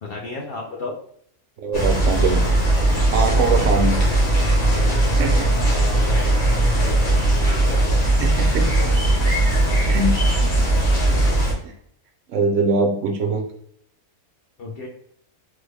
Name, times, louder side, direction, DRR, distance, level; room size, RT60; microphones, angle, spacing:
voice 1, 0.0-1.0 2.9-3.1 4.8-5.3 5.7-6.4 6.7-8.1 9.6-9.8 14.6-14.9, left 3 dB, 60° left, -1 dB, 0.6 m, -35 dB
voice 2, 1.6-2.4 3.1-4.0 5.2-5.5 8.2-8.7 9.9-10.5 11.6-11.7 12.3-13.4, right 3 dB, 65° right, 2 dB, 0.9 m, -22 dB
sound 1, 1.7-11.5, right 1 dB, 40° left, 0.9 m, -18 dB
3.3 x 2.1 x 3.3 m, 0.63 s
omnidirectional pair, 1.5 m